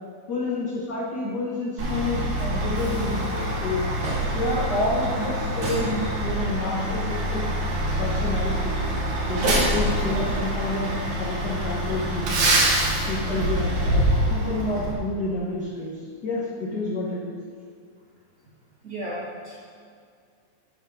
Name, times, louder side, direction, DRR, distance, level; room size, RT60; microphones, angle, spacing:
voice 1, 0.3-3.8 4.3-7.4 8.0-8.8 9.3-12.6 13.1-17.4, left 2 dB, 65° left, -6 dB, 1.0 m, -29 dB
Truck, 1.8-14.9, right 1 dB, 70° right, 2.9 m, -25 dB
voice 2, 18.8-19.6, right 1 dB, 30° right, -7 dB, 1.9 m, -35 dB
8.8 x 6.5 x 5.4 m, 2.2 s
omnidirectional pair, 3.7 m